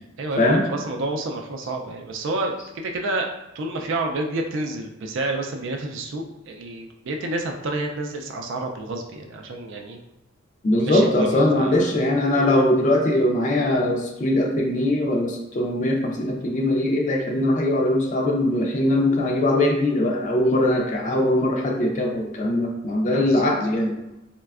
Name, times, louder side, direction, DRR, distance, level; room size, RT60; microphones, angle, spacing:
voice 1, 0.2-3.3 3.5-10.0 10.8-11.9 23.1-23.5, right 2 dB, 65° right, 3 dB, 0.4 m, -29 dB
voice 2, 10.6-23.9, left 1 dB, 40° left, 0 dB, 0.4 m, -21 dB
4.1 x 2.2 x 2.3 m, 0.94 s
head